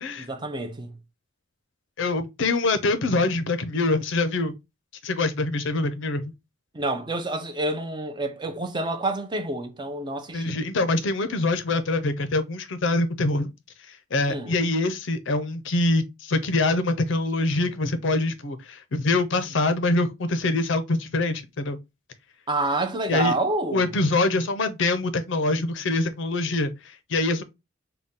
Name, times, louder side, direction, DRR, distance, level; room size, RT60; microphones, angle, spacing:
voice 1, 0.2-1.0 6.7-10.6 14.3-14.5 22.5-23.9, right 2 dB, 20° right, 0.5 m, -28 dB
voice 2, 2.0-4.5 5.0-6.3 10.3-13.5 13.9-21.8 23.1-23.3 23.7-27.4, left 2 dB, 60° left, 0.6 m, -24 dB
4.0 x 2.2 x 3.5 m
head